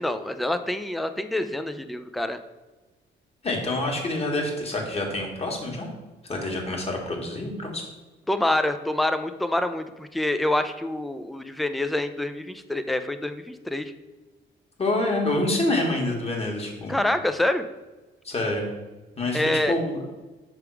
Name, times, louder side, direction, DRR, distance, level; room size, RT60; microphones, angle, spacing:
voice 1, 0.0-2.4 8.3-13.9 16.9-17.6 19.3-19.8, left 1 dB, ahead, 9 dB, 0.3 m, -26 dB
voice 2, 3.4-5.9 6.2-7.8 14.8-17.0 18.2-18.6 19.2-20.0, left 2 dB, 30° left, 0 dB, 1.5 m, -27 dB
5.8 x 3.5 x 4.6 m, 1.2 s
cardioid pair, 90°, 20 cm